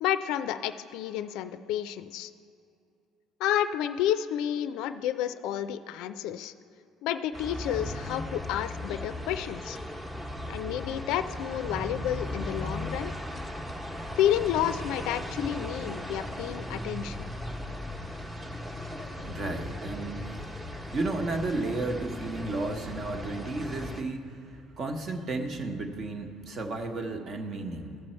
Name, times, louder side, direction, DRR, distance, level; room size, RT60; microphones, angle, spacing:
voice 1, 0.0-2.3 3.4-6.5 7.0-9.8 10.5-13.1 14.2-17.3, left 11 dB, 75° left, 11 dB, 0.3 m, -30 dB
sound 1, 7.3-24.0, left 1 dB, 15° right, 1.0 m, -37 dB
voice 2, 19.3-20.3 20.9-28.0, right 2 dB, 50° right, 5 dB, 1.1 m, -33 dB
14.5 x 7.0 x 4.4 m, 2.6 s
supercardioid pair, 95°, 0 cm